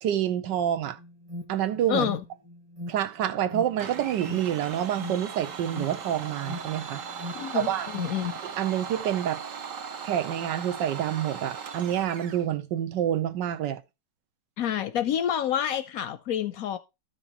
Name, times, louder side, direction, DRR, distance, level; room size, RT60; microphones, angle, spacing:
voice 1, 0.0-1.0 1.5-2.1 2.9-7.0 7.5-7.9 8.6-9.4 10.0-13.8, right 10 dB, 85° right, 1.4 m, -27 dB
Alarm, 0.8-8.3, left 1 dB, 20° right, 1.1 m, -41 dB
voice 2, 1.9-2.2 7.3-8.3 14.6-16.8, left 10 dB, 70° left, 0.9 m, -28 dB
Domestic sounds home sounds, 3.8-12.5, right 6 dB, 55° right, 1.2 m, -38 dB
12.5 x 6.1 x 2.9 m
omnidirectional pair, 1.8 m